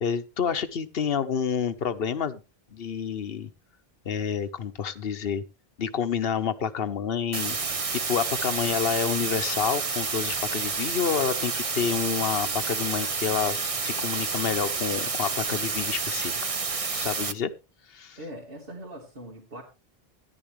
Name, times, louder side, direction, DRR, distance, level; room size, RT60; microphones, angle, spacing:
voice 1, 0.0-2.4 2.7-3.5 4.0-5.4 5.8-7.6 7.9-16.4 16.9-17.5 17.9-18.2, left 7 dB, 70° left, 12 dB, 1.1 m, -28 dB
sound 1, 7.3-17.3, right 4 dB, 35° right, 0.9 m, -29 dB
voice 2, 18.2-19.6, equal, 65° right, -3 dB, 2.7 m, -41 dB
14.0 x 11.0 x 3.2 m, 0.28 s
omnidirectional pair, 1.0 m